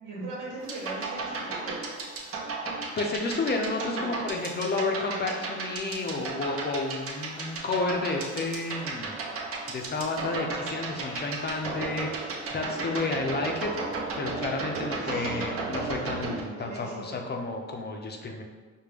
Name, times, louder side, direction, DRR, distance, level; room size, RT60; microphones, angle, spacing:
voice 1, 0.0-1.8 3.9-4.1 15.0-15.5 16.6-17.2, right 2 dB, 90° right, -3 dB, 1.1 m, -39 dB
sound 1, 0.6-16.4, right 3 dB, 50° right, 0.8 m, -35 dB
voice 2, 3.0-9.1 9.7-13.7 14.2-18.4, left 3 dB, 35° left, 2 dB, 0.5 m, -31 dB
5.0 x 2.1 x 3.4 m, 1.5 s
cardioid pair, 90°, 30 cm